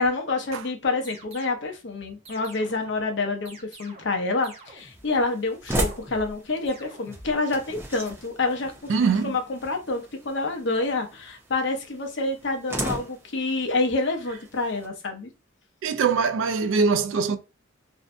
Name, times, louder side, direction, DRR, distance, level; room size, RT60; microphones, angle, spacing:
voice 1, 0.0-8.9 9.2-15.3, left 3 dB, 65° left, 0.6 m, -27 dB
sound 1, 1.0-1.7 2.2-3.0 3.4-4.2 4.4-5.1 5.6-6.4 6.6-7.3, right 2 dB, 30° right, 0.8 m, -47 dB
sound 2, 4.8-14.9, right 1 dB, 10° right, 0.4 m, -37 dB
voice 2, 8.9-9.3 15.8-17.4, right 5 dB, 75° right, 0.3 m, -22 dB
2.6 x 2.1 x 2.5 m
head